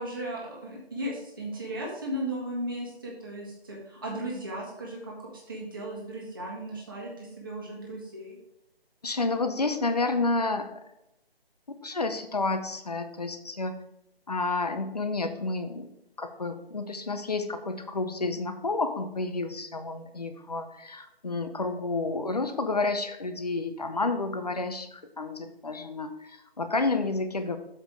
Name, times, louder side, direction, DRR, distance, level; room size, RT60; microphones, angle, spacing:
voice 1, 0.0-8.4, right 1 dB, 20° right, -3 dB, 1.4 m, -36 dB
voice 2, 9.0-10.8 11.8-13.7 14.3-15.9 16.2-27.6, left 3 dB, 40° left, 8 dB, 0.7 m, -30 dB
7.3 x 5.2 x 4.7 m, 0.85 s
figure-of-eight pair, 175°, 31 cm